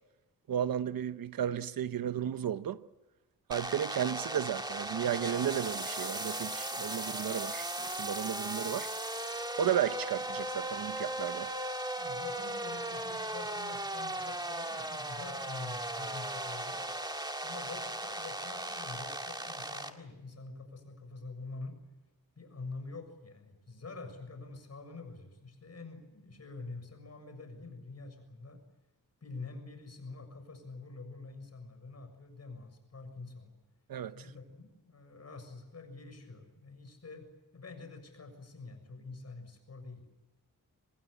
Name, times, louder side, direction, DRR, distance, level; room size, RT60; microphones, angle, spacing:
voice 1, 0.5-2.8 3.5-8.9 9.6-11.5 33.9-34.2, right 10 dB, 80° right, 0.9 m, -33 dB
sound 1, 3.5-19.9, right 1 dB, 10° right, 2.1 m, -37 dB
voice 2, 12.0-17.0 17.4-21.7 22.4-28.6 29.2-33.5 34.1-37.3 37.5-40.0, left 3 dB, 45° left, 6.9 m, -46 dB
26.0 x 20.0 x 8.5 m
cardioid pair, 75°, 34 cm